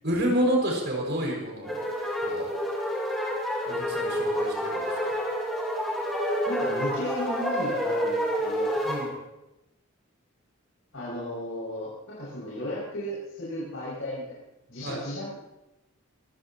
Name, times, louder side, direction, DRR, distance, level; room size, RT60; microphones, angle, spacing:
voice 1, 0.0-1.9 2.2-2.6 3.7-5.1 8.8-9.1 14.8-15.0, right 1 dB, 55° right, -1 dB, 6.2 m, -29 dB
sound 1, 1.6-9.1, equal, ahead, 4.1 m, -28 dB
voice 2, 6.4-8.8 10.9-14.4 14.7-15.4, left 1 dB, 70° left, -10 dB, 6.7 m, -35 dB
25.0 x 15.5 x 3.1 m, 0.93 s
head